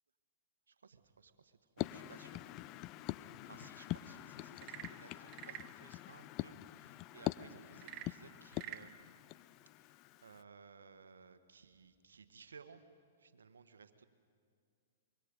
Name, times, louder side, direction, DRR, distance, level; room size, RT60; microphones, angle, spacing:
voice 1, 0.7-2.8 3.1-9.0 10.2-12.8 13.2-14.0, right 5 dB, 85° right, 10 dB, 1.3 m, -59 dB
sound 1, 1.8-10.4, left 16 dB, 40° left, 0.4 m, -44 dB
Frog / Percussion / Wood, 4.5-5.8 7.8-8.9, right 15 dB, 40° right, 0.7 m, -48 dB
25.0 x 22.5 x 5.3 m, 2.3 s
hypercardioid pair, 120°, 0 cm